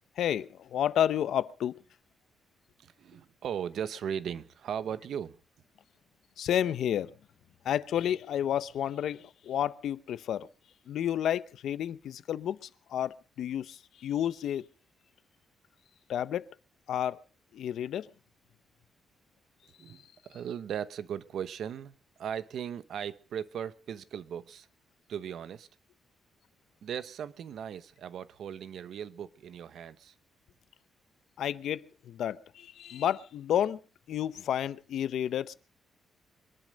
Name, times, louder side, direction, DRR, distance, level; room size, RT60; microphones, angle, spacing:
voice 1, 0.2-1.8 6.4-7.1 7.6-10.5 10.9-14.7 16.1-16.5 16.9-17.2 17.5-18.1 31.4-33.8 34.1-35.5, left 10 dB, 75° left, 0.7 m, -31 dB
voice 2, 2.8-5.4 19.8-24.7 25.1-25.7 26.8-30.1, right 8 dB, 65° right, 0.9 m, -38 dB
24.0 x 11.0 x 5.2 m
wide cardioid pair, 160°, 0 cm